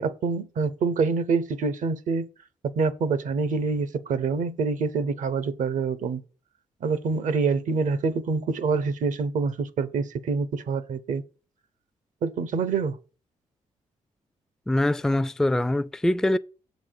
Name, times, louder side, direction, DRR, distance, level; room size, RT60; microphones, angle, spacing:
voice 1, 0.0-2.3 2.8-6.2 6.8-11.2 12.2-13.0, right 4 dB, 75° right, 0.7 m, -26 dB
voice 2, 14.7-16.4, left 1 dB, 5° left, 0.3 m, -23 dB
7.3 x 4.1 x 6.5 m
cardioid pair, 65°, 13 cm